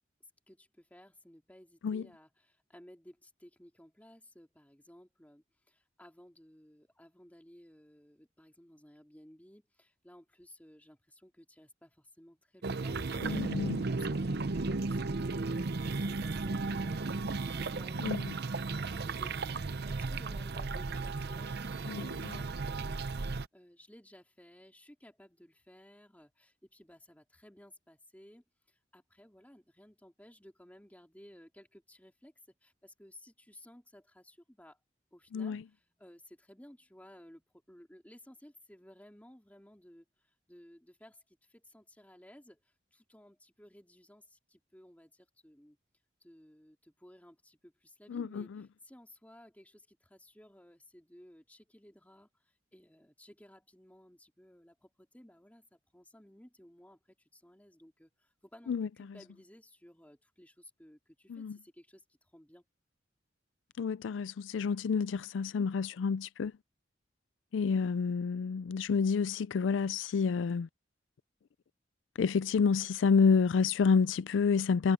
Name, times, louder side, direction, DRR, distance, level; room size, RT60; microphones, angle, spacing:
voice 1, 0.0-18.0 18.7-34.8 35.1-45.8 46.2-62.6, left 1 dB, 10° left, 3.0 m, -57 dB
sound 1, 12.6-23.5, right 3 dB, 60° right, 0.7 m, -35 dB
voice 2, 13.2-13.8 18.0-18.3 21.9-22.4 35.3-35.6 48.1-48.4 58.7-58.9 61.3-61.6 63.8-66.5 67.5-70.7 72.2-74.9, left 5 dB, 80° left, 0.4 m, -29 dB
head